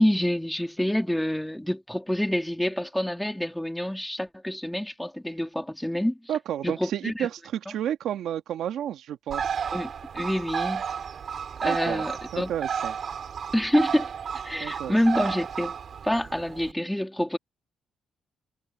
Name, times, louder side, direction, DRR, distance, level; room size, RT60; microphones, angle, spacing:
voice 1, 0.0-6.2 6.6-7.3 9.7-10.8 11.6-12.5 13.5-14.1 14.4-15.8 16.0-17.4, left 1 dB, 5° left, 3.5 m, -27 dB
voice 2, 6.3-9.5 11.6-12.0 12.3-13.0 14.6-15.0, right 10 dB, 75° right, 1.7 m, -31 dB
Bird, 9.3-16.7, right 7 dB, 55° right, 4.4 m, -32 dB
cardioid pair, 90°, 0 cm